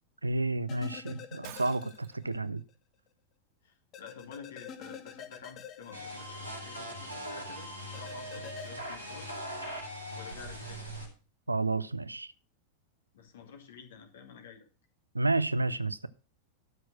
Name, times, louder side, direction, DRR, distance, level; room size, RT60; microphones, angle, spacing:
voice 1, 0.2-2.6 11.5-12.3 15.1-16.1, right 2 dB, 80° right, 0.6 m, -30 dB
sound 1, 0.7-2.4 2.7-2.8 3.9-6.7 7.9-8.7, left 8 dB, 35° left, 1.4 m, -47 dB
Shatter, 1.4-2.3, right 10 dB, 50° right, 1.7 m, -48 dB
voice 2, 3.6-9.4 10.1-10.9 13.1-14.7, left 6 dB, 60° left, 2.4 m, -50 dB
sound 2, 5.9-11.1, equal, 90° left, 4.1 m, -40 dB
12.0 x 6.3 x 6.2 m
figure-of-eight pair, 90°, 0 cm